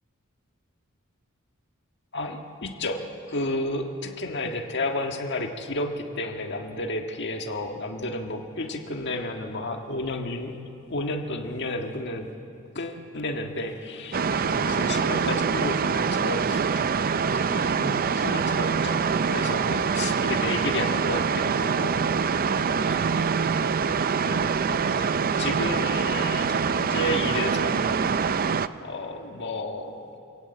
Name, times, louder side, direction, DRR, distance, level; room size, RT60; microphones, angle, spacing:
voice 1, 2.1-10.5 10.9-12.3 12.8-16.6 17.3-22.0 22.7-23.3 24.2-28.1 28.8-30.0, left 2 dB, 55° left, 4 dB, 1.7 m, -32 dB
sound 1, 14.1-28.7, right 6 dB, 40° right, 0.5 m, -25 dB
27.0 x 17.0 x 8.0 m, 2.8 s
head